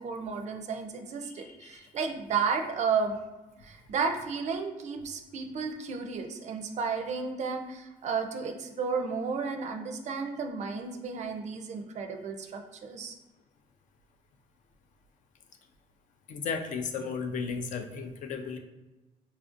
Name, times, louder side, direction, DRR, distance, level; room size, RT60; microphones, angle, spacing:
voice 1, 0.0-3.1 3.6-13.2, right 5 dB, 50° right, 5 dB, 0.4 m, -33 dB
voice 2, 1.2-1.8 16.3-18.6, left 5 dB, 60° left, 6 dB, 0.4 m, -35 dB
4.2 x 2.4 x 2.5 m, 1.1 s
cardioid pair, 110°, 15 cm